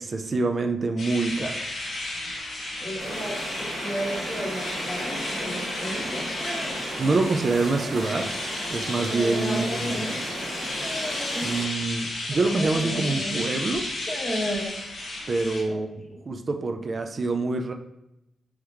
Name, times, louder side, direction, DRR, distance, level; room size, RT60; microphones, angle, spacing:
voice 1, 0.0-1.6 7.0-8.3 8.7-10.1 11.4-13.9 15.3-15.9 16.3-17.7, right 3 dB, 35° right, 6 dB, 0.4 m, -26 dB
sound 1, 1.0-15.6, left 2 dB, 60° left, 1.4 m, -33 dB
voice 2, 2.8-6.3 9.4-9.8, equal, 15° left, -3 dB, 1.2 m, -34 dB
sound 2, 3.0-11.6, right 1 dB, 75° right, 1.1 m, -35 dB
sound 3, 5.4-7.2 7.8-8.3 9.0-10.4 10.8-11.6 12.3-13.5 13.9-14.7, equal, 5° right, 0.9 m, -33 dB
3.8 x 3.0 x 3.2 m, 0.86 s
wide cardioid pair, 125°, 0 cm